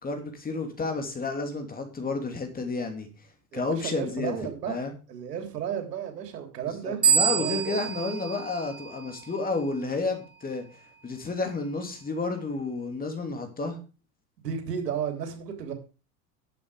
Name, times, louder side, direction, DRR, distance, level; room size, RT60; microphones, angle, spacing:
voice 1, 0.0-3.1 3.5-4.9 6.6-13.8, left 3 dB, 20° left, 4 dB, 3.1 m, -31 dB
voice 2, 3.5-4.8 5.1-7.0 7.3-7.8 14.4-15.7, right 8 dB, 80° right, 5 dB, 3.4 m, -33 dB
sound 1, 7.0-9.5, right 8 dB, 20° right, 2.7 m, -27 dB
11.0 x 8.2 x 4.9 m, 0.33 s
hypercardioid pair, 100°, 48 cm